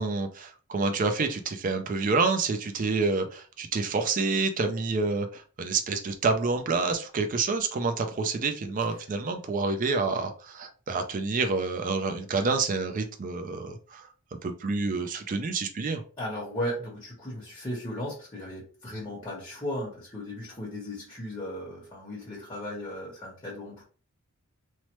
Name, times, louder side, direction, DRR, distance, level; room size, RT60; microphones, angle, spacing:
voice 1, 0.0-14.1 14.4-16.0, right 4 dB, 35° right, 6 dB, 0.3 m, -28 dB
voice 2, 16.2-23.8, left 1 dB, 20° left, -6 dB, 1.0 m, -36 dB
3.1 x 2.0 x 2.9 m, 0.38 s
head